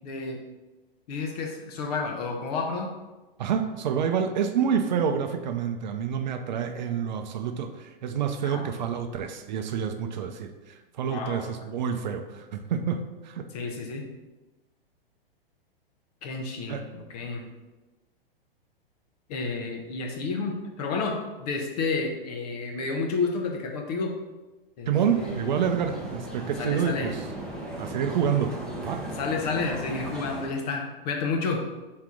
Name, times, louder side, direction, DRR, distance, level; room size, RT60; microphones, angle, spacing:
voice 1, 0.0-0.4 1.1-2.9 8.4-8.7 11.0-11.5 13.5-14.1 16.2-17.5 19.3-24.2 24.8-24.9 25.2-25.4 26.6-27.1 29.2-31.6, left 4 dB, 40° left, 3 dB, 1.0 m, -30 dB
voice 2, 3.4-13.5 16.7-16.8 24.9-27.2 27.8-28.5 28.8-29.0, right 7 dB, 50° right, 6 dB, 0.6 m, -28 dB
sound 1, 24.9-30.5, right 1 dB, ahead, 0.9 m, -37 dB
5.8 x 4.4 x 3.7 m, 1.1 s
figure-of-eight pair, 105°, 30 cm